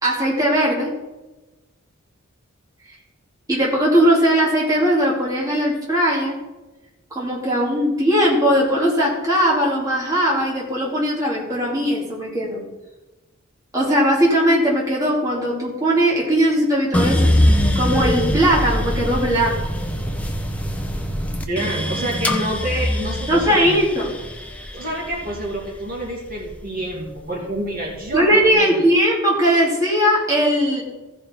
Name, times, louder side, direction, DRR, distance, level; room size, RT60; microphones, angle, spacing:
voice 1, 0.0-0.9 3.5-6.4 7.1-12.6 13.7-17.3 17.7-19.6 23.3-24.1 28.1-30.8, equal, 15° right, -5 dB, 2.3 m, -19 dB
sound 1, 16.9-27.1 27.6-28.4, equal, 5° left, 0.7 m, -23 dB
voice 2, 21.4-23.8 24.7-28.8, right 1 dB, 45° right, -3 dB, 2.4 m, -28 dB
15.5 x 5.3 x 4.4 m, 1.1 s
head